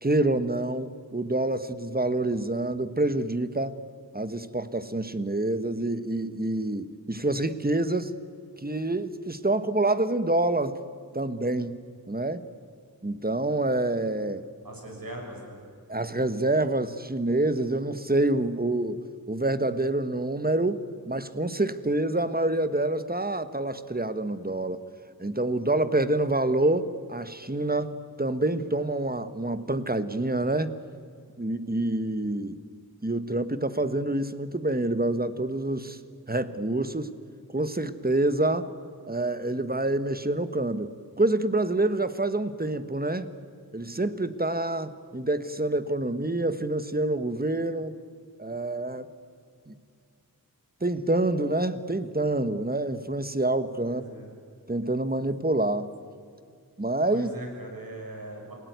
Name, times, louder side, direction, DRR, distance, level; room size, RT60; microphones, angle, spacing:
voice 1, 0.0-3.8 4.1-8.1 8.6-10.8 11.1-11.8 12.1-12.5 13.0-14.4 15.9-19.0 19.3-24.8 25.2-30.8 31.4-32.6 33.0-36.0 36.3-37.1 37.5-38.7 39.1-43.3 43.7-48.0 48.4-49.1 49.7-49.8 50.8-54.0 54.7-55.9 56.8-57.3, right 2 dB, 25° right, 12 dB, 1.4 m, -27 dB
voice 2, 14.6-15.6 53.8-54.2 57.1-58.5, right 1 dB, 65° right, 1 dB, 6.5 m, -40 dB
28.0 x 17.5 x 9.4 m, 2.3 s
wide cardioid pair, 55°, 37 cm